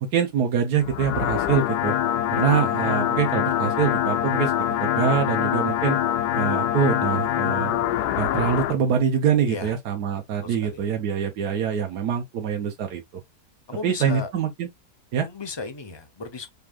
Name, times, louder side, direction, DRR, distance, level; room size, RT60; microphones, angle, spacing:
voice 1, 0.0-1.9 2.3-4.5 4.8-6.0 6.3-7.8 8.2-13.0 13.8-14.7 15.1-15.3, right 7 dB, 75° right, 1.4 m, -24 dB
sound 1, 0.8-8.7, left 11 dB, 80° left, 1.1 m, -24 dB
voice 2, 10.4-10.8 13.7-14.3 15.2-16.5, left 4 dB, 45° left, 0.3 m, -35 dB
5.3 x 3.4 x 2.4 m
omnidirectional pair, 1.8 m